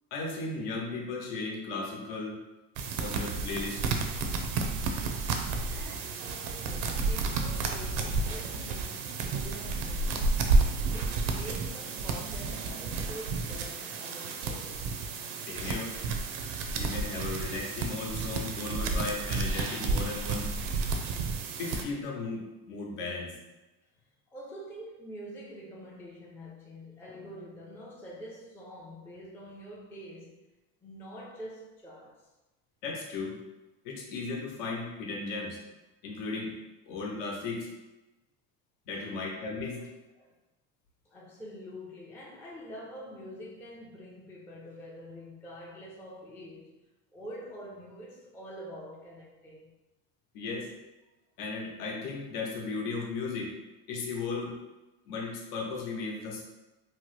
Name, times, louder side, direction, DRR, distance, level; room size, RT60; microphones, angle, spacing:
voice 1, 0.1-2.4 3.0-3.8 15.4-15.9 16.7-20.5 21.6-23.3 32.8-33.3 33.8-35.6 36.0-36.5 36.9-37.7 38.9-39.9 50.3-50.7 51.4-53.5 53.9-54.6 55.1-56.4, left 3 dB, 75° left, 0.9 m, -36 dB
sound 1, 2.8-21.8, right 3 dB, 65° right, 0.6 m, -31 dB
voice 2, 5.7-10.4 10.9-15.0 24.3-30.4 30.8-32.3 35.3-35.4 38.9-39.3 40.1-40.4 41.1-46.7 47.1-49.7, equal, 5° left, 0.4 m, -46 dB
3.1 x 2.1 x 3.1 m
supercardioid pair, 95°, 48 cm